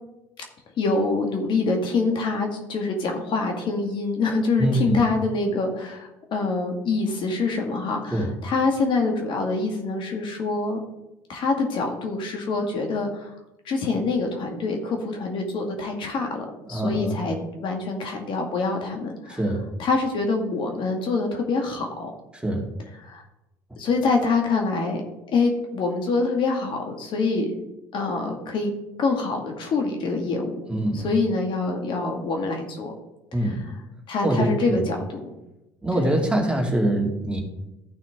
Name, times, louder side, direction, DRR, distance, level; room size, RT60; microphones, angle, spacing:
voice 1, 0.8-10.8 11.3-13.3 13.7-19.4 19.8-22.1 23.0-23.2 23.8-25.0 25.3-27.5 27.9-28.7 29.0-30.5 30.9-32.9 34.1-35.3 35.9-36.1, left 3 dB, 55° left, 2 dB, 2.0 m, -25 dB
voice 2, 4.6-5.0 8.1-8.3 16.7-17.2 19.3-19.7 22.3-22.7 30.7-31.1 33.3-33.7 34.2-34.8 35.8-37.4, right 1 dB, 10° right, 0 dB, 2.4 m, -24 dB
14.0 x 5.7 x 3.7 m, 0.93 s
hypercardioid pair, 75°, 10 cm